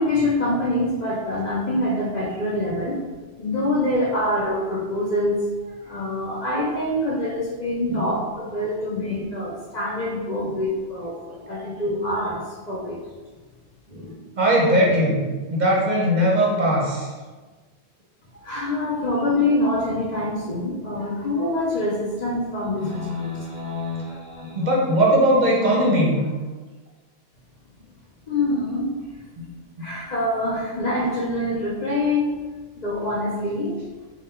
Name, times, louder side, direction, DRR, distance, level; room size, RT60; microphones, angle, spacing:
voice 1, 0.0-3.0 3.4-5.4 5.6-13.0 18.4-23.1 28.3-28.9 29.8-32.3 32.8-33.8, left 1 dB, 50° left, -4 dB, 0.6 m, -25 dB
voice 2, 13.9-15.2 15.5-17.1 22.8-26.3 29.4-29.5, equal, 50° right, -3 dB, 0.7 m, -21 dB
3.6 x 2.2 x 4.3 m, 1.3 s
omnidirectional pair, 1.1 m